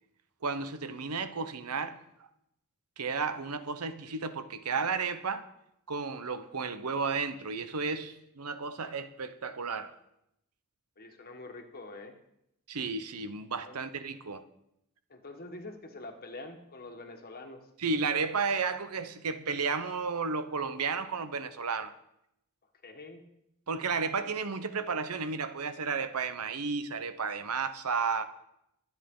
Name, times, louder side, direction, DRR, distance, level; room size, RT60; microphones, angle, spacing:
voice 1, 0.4-2.0 3.0-5.5 5.9-10.0 12.7-14.4 17.8-21.9 23.7-28.2, right 5 dB, 90° right, 0.9 m, -33 dB
voice 2, 11.0-12.1 13.6-13.8 15.1-17.6 22.8-23.2 24.2-24.3 24.7-24.8, left 2 dB, 45° left, 1.5 m, -45 dB
22.5 x 9.2 x 3.8 m
head